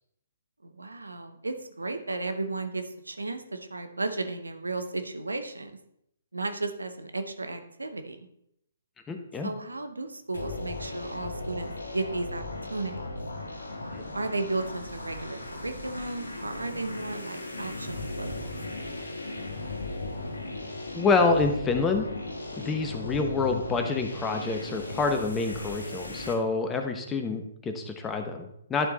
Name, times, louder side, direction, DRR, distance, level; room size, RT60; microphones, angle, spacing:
voice 1, 0.6-5.7 6.3-8.2 9.4-12.4 12.7-13.2 14.1-18.5, right 2 dB, 90° right, 8 dB, 0.8 m, -34 dB
voice 2, 9.1-9.5 13.9-14.0 20.9-22.1 22.5-28.9, left 4 dB, 15° left, 5 dB, 0.9 m, -27 dB
sound 1, 10.3-26.3, left 2 dB, 85° left, 1.4 m, -37 dB
11.0 x 4.6 x 4.1 m, 0.75 s
figure-of-eight pair, 130°, 0 cm